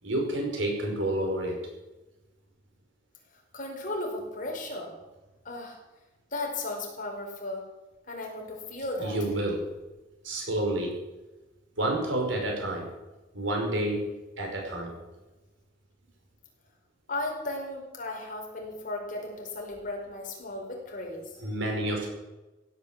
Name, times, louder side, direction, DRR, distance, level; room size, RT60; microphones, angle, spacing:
voice 1, 0.0-1.6 9.0-9.6 10.2-11.0 11.8-12.9 13.3-14.0 14.4-14.9 21.4-22.1, right 1 dB, 75° right, 1 dB, 5.4 m, -29 dB
voice 2, 3.5-4.9 5.4-5.8 6.3-7.7 8.1-9.2 17.1-21.5, left 2 dB, 45° left, 0 dB, 4.8 m, -35 dB
16.5 x 9.3 x 7.6 m, 1.1 s
head